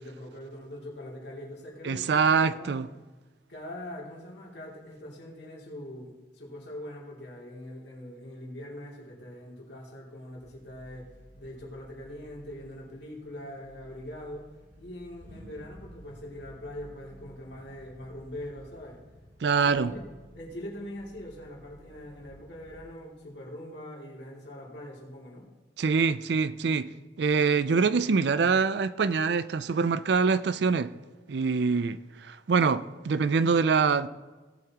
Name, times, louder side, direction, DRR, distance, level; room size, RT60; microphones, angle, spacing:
voice 1, 0.0-2.8 3.5-14.5 14.8-19.0 19.6-20.0 20.3-25.5 31.7-31.8, left 1 dB, 65° left, 2.7 m, -42 dB
voice 2, 1.8-2.9 19.4-19.9 25.8-26.9 27.2-30.9 31.3-34.1, right 5 dB, 60° right, 0.4 m, -24 dB
sound 1, 10.3-22.9, equal, 80° right, 3.8 m, -53 dB
17.5 x 8.0 x 2.9 m
head